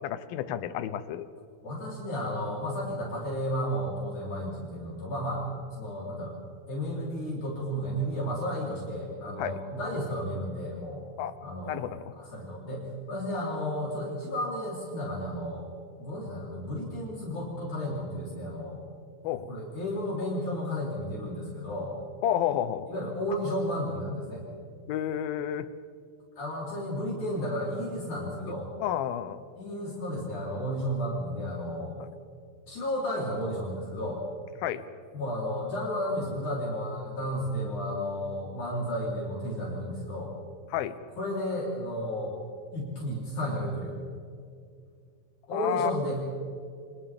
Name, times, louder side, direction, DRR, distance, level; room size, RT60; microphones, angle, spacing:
voice 1, 0.0-1.3 9.4-9.6 11.2-11.3 11.6-12.1 19.2-19.5 22.2-22.9 24.9-25.7 28.8-29.4 32.0-32.1 34.6-34.9 40.7-41.0 45.5-45.9, left 10 dB, 85° left, 13 dB, 2.7 m, -30 dB
voice 2, 1.6-5.5 5.8-6.3 6.7-11.0 11.4-11.8 12.2-15.6 16.0-18.8 19.5-21.9 22.9-24.4 26.3-28.7 29.6-31.9 32.7-34.2 35.1-40.3 41.2-42.3 42.7-44.0 45.5-46.2, equal, 55° left, -6 dB, 5.2 m, -33 dB
30.0 x 26.5 x 3.6 m, 2.3 s
omnidirectional pair, 4.2 m